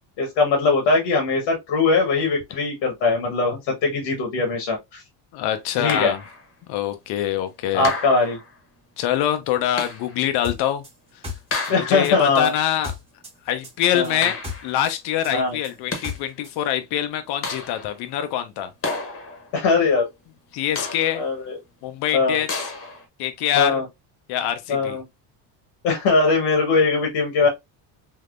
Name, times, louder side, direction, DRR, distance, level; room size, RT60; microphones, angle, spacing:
voice 1, 0.2-5.0 5.8-6.1 7.7-8.4 11.7-12.5 13.9-14.2 15.3-15.6 19.5-20.1 21.1-21.6 22.1-22.4 23.6-23.8 24.7-25.0 25.8-27.5, left 4 dB, 75° left, 1.2 m, -21 dB
voice 2, 5.3-6.2 6.7-7.9 9.0-10.8 11.8-12.9 13.5-18.7 20.5-21.2 21.8-22.7 23.2-23.8 24.3-25.0, left 11 dB, 60° left, 0.6 m, -24 dB
sound 1, 5.9-6.5 7.8-8.6 9.8-10.2 11.5-12.2 14.2-14.8 15.7-16.3 17.4-18.0 18.8-19.6 20.8-21.3 22.5-23.1, left 3 dB, 30° left, 0.9 m, -31 dB
sound 2, 10.4-13.4 13.6-16.6, left 4 dB, 15° right, 1.1 m, -35 dB
3.5 x 2.7 x 2.4 m
cardioid pair, 140°, 44 cm